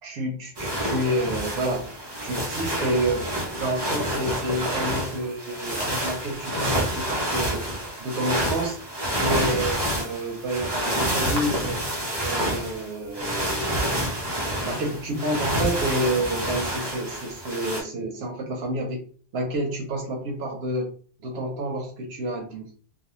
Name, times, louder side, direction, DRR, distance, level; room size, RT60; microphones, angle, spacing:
voice 1, 0.0-1.9 2.2-7.7 8.0-8.8 9.2-11.9 12.2-14.2 14.6-19.0 19.3-20.9 21.2-22.7, right 1 dB, 85° right, 2 dB, 0.8 m, -29 dB
sound 1, 0.6-17.8, equal, 30° right, 0.6 m, -28 dB
2.4 x 2.1 x 2.9 m, 0.43 s
omnidirectional pair, 1.0 m